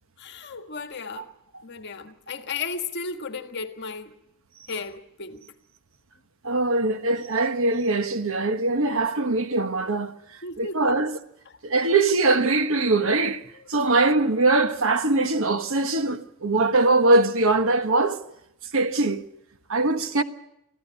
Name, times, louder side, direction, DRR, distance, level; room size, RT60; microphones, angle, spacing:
voice 1, 0.2-1.3 1.6-4.1 4.7-5.4 10.4-11.0 19.9-20.0, left 4 dB, 50° left, 1.7 m, -34 dB
voice 2, 6.4-10.1 10.6-11.2 11.6-13.4 13.7-18.2 18.7-19.2 19.7-20.2, right 2 dB, 60° right, 1.3 m, -22 dB
25.5 x 15.0 x 8.7 m
head